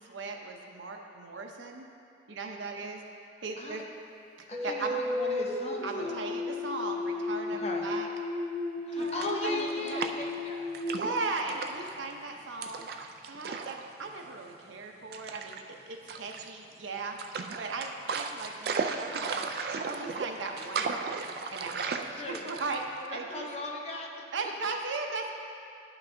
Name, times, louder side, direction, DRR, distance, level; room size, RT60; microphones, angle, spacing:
voice 1, 0.0-1.9 2.3-3.0 3.4-3.8 4.4-5.0 5.8-8.1 8.9-10.0 10.9-12.9 13.3-17.2 17.6-19.4 19.8-21.2 21.5-23.5 24.3-25.3, right 3 dB, 90° right, 2 dB, 0.7 m, -37 dB
voice 2, 4.5-6.2 7.6-7.9 8.8-10.7 11.4-11.5 22.1-22.5 23.1-24.1, left 2 dB, 35° left, 0 dB, 0.6 m, -38 dB
sound 1, 4.5-11.9, left 2 dB, 10° left, 1.2 m, -34 dB
sound 2, 9.0-10.4 10.7-11.9 12.6-13.8 14.1-14.3 15.1-15.6 16.1-16.7 17.2-23.1, right 5 dB, 55° right, 0.3 m, -35 dB
11.0 x 6.0 x 2.6 m, 2.5 s
head